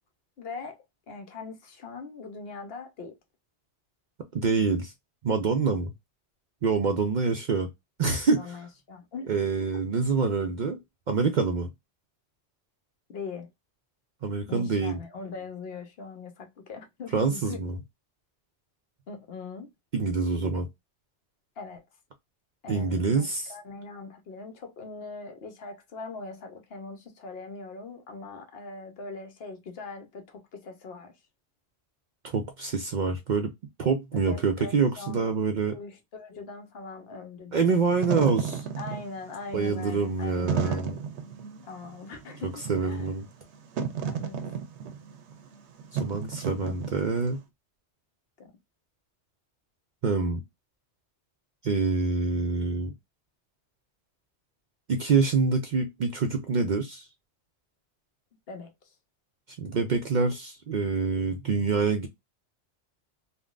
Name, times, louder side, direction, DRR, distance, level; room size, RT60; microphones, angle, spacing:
voice 1, 0.4-3.2 8.4-9.6 13.1-13.5 14.5-17.6 19.1-19.7 21.6-21.8 22.6-31.1 34.1-35.3 35.7-37.8 38.8-40.8 41.6-43.1 44.0-44.6 48.4-48.5 58.5-58.7, left 4 dB, 65° left, 0.9 m, -41 dB
voice 2, 4.3-4.9 5.2-5.9 6.6-7.7 8.0-8.6 9.3-10.8 11.1-11.7 14.2-15.0 17.1-17.8 19.9-20.7 22.7-23.5 32.2-33.5 33.8-35.8 37.5-38.7 39.5-41.0 42.4-43.3 45.9-47.4 50.0-50.4 51.6-52.9 54.9-57.1 59.6-62.1, right 4 dB, 55° right, 0.5 m, -26 dB
Wind / Fire, 37.8-47.3, right 7 dB, 85° right, 1.0 m, -33 dB
3.5 x 2.2 x 2.3 m
omnidirectional pair, 1.1 m